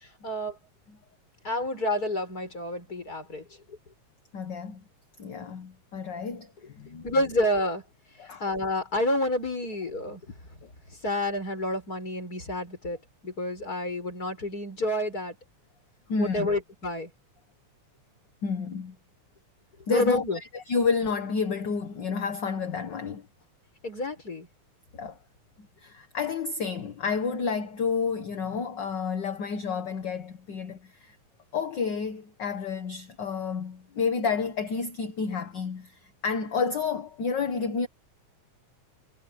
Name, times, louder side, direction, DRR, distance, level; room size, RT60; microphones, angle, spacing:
voice 1, 0.2-0.6 1.4-3.8 7.0-7.8 8.4-10.2 11.0-13.0 13.2-15.4 16.2-17.1 19.9-20.4 23.8-24.5, left 1 dB, 25° left, 7.0 m, -29 dB
voice 2, 4.3-4.8 5.2-7.0 8.2-8.4 10.6-10.7 16.1-16.5 18.4-18.9 19.9-23.3 24.9-25.2 25.6-31.1 31.5-37.9, left 5 dB, 50° left, 1.5 m, -30 dB
omnidirectional pair, 3.5 m